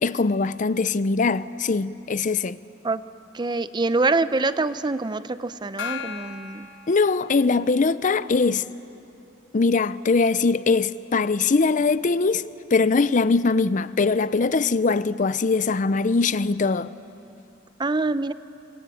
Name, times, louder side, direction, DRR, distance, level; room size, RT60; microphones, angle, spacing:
voice 1, 0.0-2.6 6.9-8.7 9.5-12.4 12.7-16.9, left 4 dB, 45° left, 0.5 m, -21 dB
voice 2, 3.3-6.7 17.8-18.3, right 3 dB, 25° right, 0.6 m, -25 dB
Gong, 5.8-7.8, left 7 dB, 75° left, 1.3 m, -36 dB
26.5 x 24.5 x 9.2 m
head